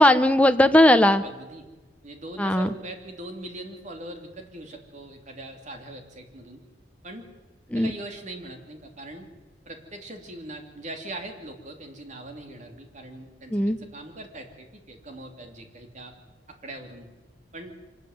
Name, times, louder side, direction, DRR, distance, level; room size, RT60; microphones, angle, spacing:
voice 1, 0.0-1.2 2.4-2.7 7.7-7.9 13.5-13.8, left 1 dB, 10° left, 8 dB, 1.0 m, -18 dB
voice 2, 1.2-1.6 2.0-6.6 7.0-7.3 7.7-9.3 9.6-16.1 16.6-17.1 17.5-17.7, right 1 dB, 45° right, 4 dB, 3.1 m, -41 dB
24.5 x 13.5 x 9.5 m, 1.2 s
head